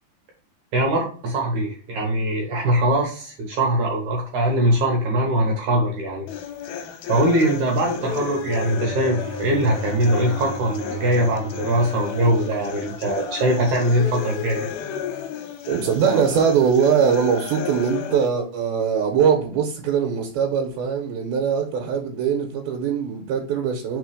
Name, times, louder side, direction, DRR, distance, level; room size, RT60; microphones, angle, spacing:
voice 1, 0.7-6.3 6.6-6.7 7.1-14.7, right 1 dB, 65° right, 2.2 m, -22 dB
sound 1, 6.3-18.3, left 7 dB, 85° left, 2.6 m, -33 dB
Bowed string instrument, 8.1-13.2, right 2 dB, 45° right, 1.2 m, -37 dB
voice 2, 15.7-24.0, right 7 dB, 90° right, 2.8 m, -21 dB
4.9 x 4.4 x 4.8 m
omnidirectional pair, 4.3 m